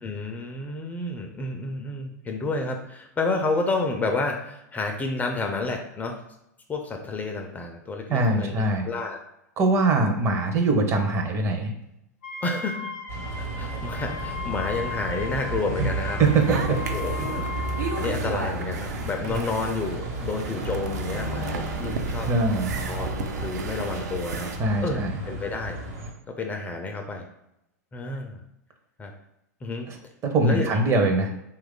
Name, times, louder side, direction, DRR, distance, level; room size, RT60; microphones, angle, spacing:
voice 1, 0.0-6.2 6.7-9.2 12.4-12.9 13.4-16.2 16.7-17.5 17.8-22.3 22.9-24.5 24.8-25.8 26.3-27.2 27.9-28.4 29.0-29.1 29.6-29.9 30.4-30.8, left 3 dB, 15° left, 3 dB, 0.3 m, -30 dB
voice 2, 8.1-8.9 9.6-11.7 16.2-16.8 19.2-19.4 22.3-22.8 24.6-25.1 29.9-30.0 30.2-31.3, right 3 dB, 30° right, 4 dB, 0.6 m, -22 dB
Wind instrument woodwind instrument, 12.2-18.1, left 5 dB, 75° left, 0.6 m, -37 dB
Bus, 13.1-26.1, right 1 dB, 55° right, 1.0 m, -33 dB
sound 1, 16.2-24.6, right 5 dB, 80° right, 0.4 m, -35 dB
3.0 x 2.3 x 3.6 m, 0.83 s
hypercardioid pair, 110°, 9 cm